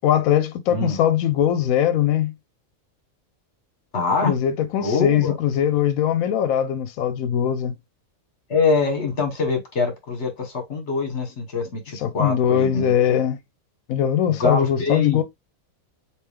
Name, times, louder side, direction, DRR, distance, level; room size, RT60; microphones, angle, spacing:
voice 1, 0.0-2.3 4.2-7.7 11.9-13.4 13.9-15.2, left 10 dB, 85° left, 1.0 m, -21 dB
voice 2, 3.9-4.3 4.8-5.4 8.5-12.9 14.3-15.2, left 4 dB, 55° left, 1.4 m, -24 dB
3.4 x 2.9 x 3.3 m
omnidirectional pair, 1.4 m